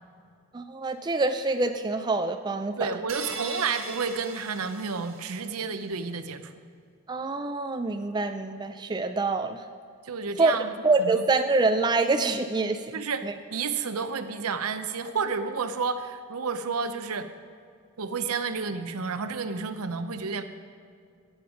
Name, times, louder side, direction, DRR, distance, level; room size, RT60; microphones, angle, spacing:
voice 1, 0.5-2.9 7.1-9.6 10.4-12.8 13.2-13.3, right 3 dB, 20° right, 7 dB, 0.3 m, -25 dB
voice 2, 2.8-6.5 10.0-10.7 11.0-11.2 12.9-13.2 13.5-17.3 18.0-20.4, right 5 dB, 80° right, 10 dB, 0.7 m, -31 dB
sound 1, 3.1-5.6, right 4 dB, 60° right, 1.4 m, -39 dB
13.5 x 8.7 x 5.1 m, 2.2 s
head